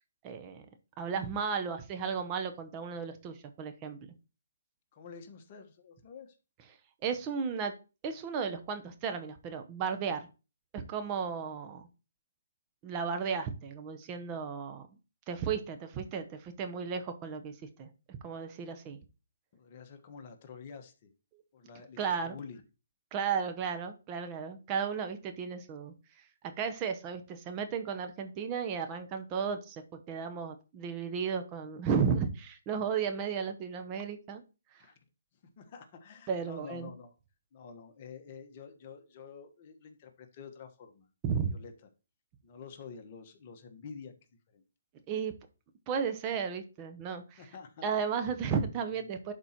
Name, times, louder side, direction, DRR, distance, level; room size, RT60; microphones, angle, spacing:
voice 1, 0.2-0.7 1.0-4.0 7.0-7.7 8.0-10.3 10.7-11.8 12.8-14.9 15.3-19.0 22.0-22.4 23.1-34.4 34.7-34.9 36.3-36.9 41.2-41.5 45.1-45.3 45.9-47.5 47.8-49.3, right 6 dB, 25° right, 6 dB, 0.9 m, -34 dB
voice 2, 4.9-6.4 19.5-21.1 21.5-22.6 34.8-34.9 35.6-37.1 37.5-41.1 41.5-41.7 42.4-44.2 44.5-44.6 47.4-47.8, left 6 dB, 35° left, 6 dB, 1.3 m, -48 dB
11.5 x 4.3 x 3.0 m, 0.32 s
hypercardioid pair, 150°, 0 cm